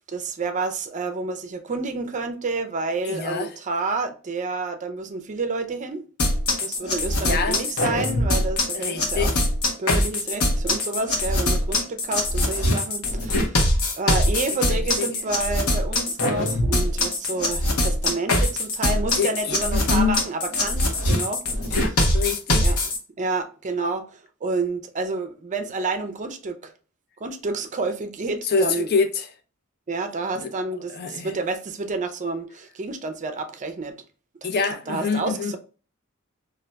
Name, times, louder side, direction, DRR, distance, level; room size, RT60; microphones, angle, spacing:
voice 1, 0.1-6.1 6.6-9.3 9.8-22.1 22.6-22.8 23.2-26.7 27.2-28.9 29.9-34.0 34.4-34.5 34.9-35.6, right 3 dB, 35° right, 0.4 m, -29 dB
voice 2, 3.0-3.5 7.2-7.6 8.7-9.4 14.2-14.4 14.7-15.1 19.2-20.2 21.7-22.8 28.5-29.3 30.4-30.5 30.9-31.3 34.4-35.5, left 5 dB, 50° left, 0.4 m, -26 dB
sound 1, 6.2-23.0, left 1 dB, 90° left, 0.9 m, -22 dB
2.5 x 2.2 x 3.9 m
head